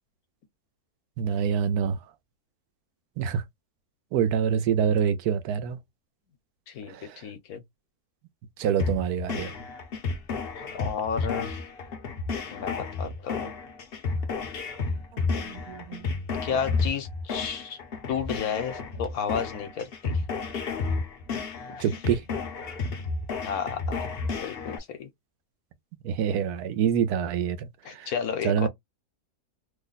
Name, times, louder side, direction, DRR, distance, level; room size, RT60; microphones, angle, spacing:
voice 1, 1.2-2.0 3.2-3.4 4.1-5.8 6.9-7.2 8.6-9.5 15.3-16.1 21.8-22.2 26.0-28.1 28.4-28.7, right 8 dB, 80° right, 1.1 m, -26 dB
voice 2, 6.7-7.6 10.6-11.6 12.5-13.5 16.4-17.8 18.1-20.2 21.7-21.9 23.4-24.0 24.4-25.1 27.8-28.7, left 7 dB, 70° left, 1.2 m, -32 dB
sound 1, 8.8-24.8, left 4 dB, 50° left, 0.8 m, -32 dB
3.0 x 2.1 x 3.9 m
omnidirectional pair, 1.6 m